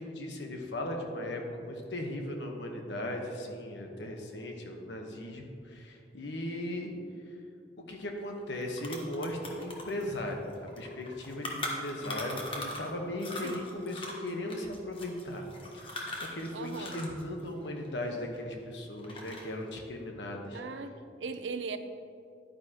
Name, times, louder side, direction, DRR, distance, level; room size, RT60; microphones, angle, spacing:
voice 1, 0.0-7.0 7.8-10.5 10.8-15.5 15.7-20.6, left 1 dB, 75° left, 2 dB, 1.2 m, -37 dB
sound 1, 8.2-8.3 8.5-12.9 13.2-17.2 17.5-18.6 19.0-19.6, left 2 dB, 30° left, 1.2 m, -40 dB
voice 2, 16.5-17.1 20.5-21.8, right 4 dB, 85° right, 8 dB, 0.6 m, -39 dB
10.5 x 9.6 x 3.0 m, 2.5 s
head